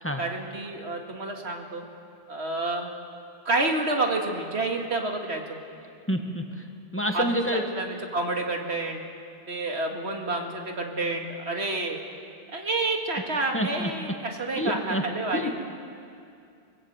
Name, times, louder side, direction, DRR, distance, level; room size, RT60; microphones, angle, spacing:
voice 1, 0.2-1.8 2.3-2.9 3.4-5.6 7.1-9.0 9.5-12.0 12.5-15.6, right 2 dB, 75° right, 2 dB, 2.3 m, -29 dB
voice 2, 6.1-6.6 6.9-7.6 13.5-13.9 14.6-15.0 15.3-15.6, equal, 10° left, 4 dB, 1.5 m, -28 dB
24.5 x 19.5 x 8.1 m, 2.5 s
omnidirectional pair, 1.1 m